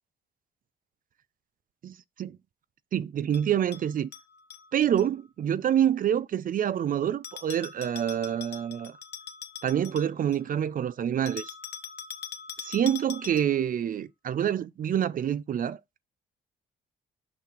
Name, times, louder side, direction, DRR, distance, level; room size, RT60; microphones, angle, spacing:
voice 1, 2.9-4.1 4.7-9.0 9.6-11.5 12.6-15.8, right 9 dB, 45° right, 0.4 m, -27 dB
Bell, 3.3-5.1 7.2-10.5 11.3-13.7, left 8 dB, 55° left, 0.9 m, -43 dB
6.0 x 3.3 x 5.8 m
cardioid pair, 90°, 20 cm